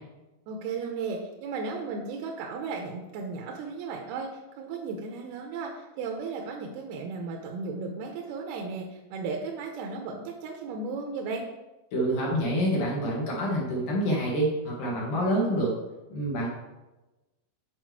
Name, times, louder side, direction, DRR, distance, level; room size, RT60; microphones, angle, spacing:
voice 1, 0.5-11.4, right 4 dB, 80° right, 1 dB, 2.6 m, -35 dB
voice 2, 11.9-15.7 16.1-16.5, equal, 60° left, -3 dB, 2.5 m, -27 dB
8.2 x 5.4 x 4.7 m, 1.1 s
omnidirectional pair, 4.7 m